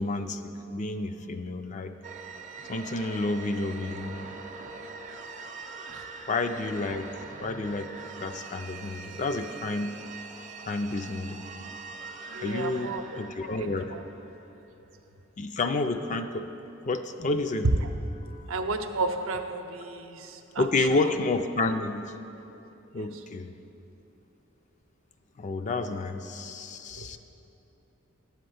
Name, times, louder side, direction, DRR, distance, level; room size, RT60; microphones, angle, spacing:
voice 1, 0.0-1.9 2.7-4.3 6.3-7.1 7.4-7.9 8.2-10.0 10.7-11.4 12.4-14.0 15.4-16.5 16.8-17.7 18.3-18.5 20.6-22.1 22.9-23.5 25.4-27.2, left 3 dB, 35° left, 8 dB, 0.4 m, -30 dB
sound 1, 2.0-14.5, right 4 dB, 35° right, 0.5 m, -43 dB
voice 2, 12.3-13.0 13.5-14.0 17.6-17.9 18.5-21.1 23.0-23.2 26.9-27.2, right 2 dB, 85° right, 6 dB, 0.6 m, -32 dB
10.5 x 4.4 x 7.8 m, 3.0 s
head